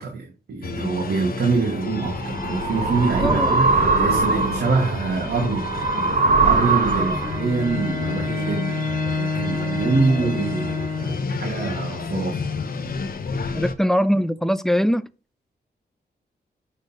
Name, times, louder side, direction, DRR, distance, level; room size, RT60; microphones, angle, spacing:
voice 1, 0.0-5.7 6.2-8.8 9.1-12.4 13.4-13.5, right 4 dB, 70° right, 1.6 m, -25 dB
sound 1, 0.6-13.7, left 4 dB, 60° left, 0.9 m, -31 dB
sound 2, 1.7-7.5, right 3 dB, 50° right, 2.0 m, -22 dB
voice 2, 3.2-3.5 7.0-7.2 13.5-15.1, equal, ahead, 0.5 m, -22 dB
Bowed string instrument, 7.2-11.4, left 3 dB, 20° right, 3.1 m, -27 dB
6.6 x 4.3 x 5.3 m
wide cardioid pair, 115°, 17 cm